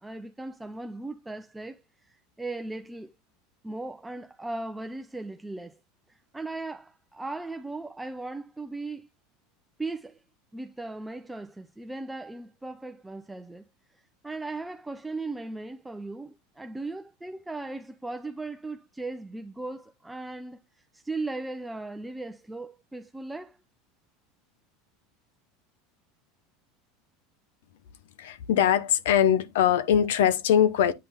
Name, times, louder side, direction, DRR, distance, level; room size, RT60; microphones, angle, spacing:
voice 1, 0.0-3.1 3.6-5.8 6.1-9.1 9.8-10.2 10.5-13.6 13.9-23.6, right 2 dB, 10° right, 0.6 m, -37 dB
voice 2, 28.2-30.9, left 9 dB, 80° left, 0.9 m, -22 dB
8.7 x 3.5 x 4.3 m
supercardioid pair, 105°, 0 cm